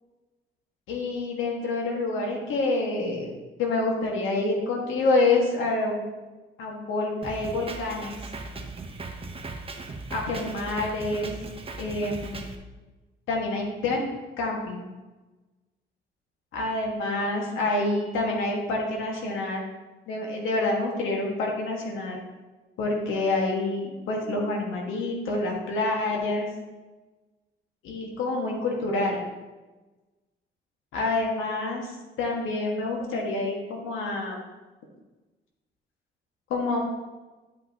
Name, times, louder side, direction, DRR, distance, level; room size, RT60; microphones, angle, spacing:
voice 1, 0.9-3.3 3.6-6.0 6.6-8.2 10.1-11.3 11.8-12.4 13.3-14.0 14.4-14.9 16.5-19.6 20.1-22.2 22.8-26.5 27.8-29.2 30.9-31.9 32.2-34.4 36.5-36.8, left 2 dB, 85° left, 0 dB, 1.7 m, -27 dB
Drum kit, 7.2-12.6, right 3 dB, 30° right, 0.9 m, -38 dB
10.0 x 5.6 x 2.9 m, 1.2 s
cardioid pair, 90°, 20 cm